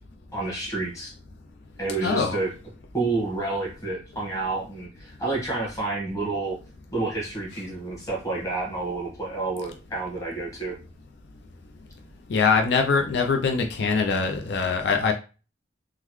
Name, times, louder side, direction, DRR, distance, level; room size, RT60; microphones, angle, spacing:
voice 1, 0.3-1.1 1.8-2.5 2.9-6.6 6.9-10.7, right 3 dB, 20° left, -2 dB, 1.2 m, -29 dB
voice 2, 2.0-2.4 12.3-15.1, left 5 dB, 80° left, 3 dB, 0.4 m, -23 dB
3.7 x 2.1 x 3.0 m, 0.33 s
head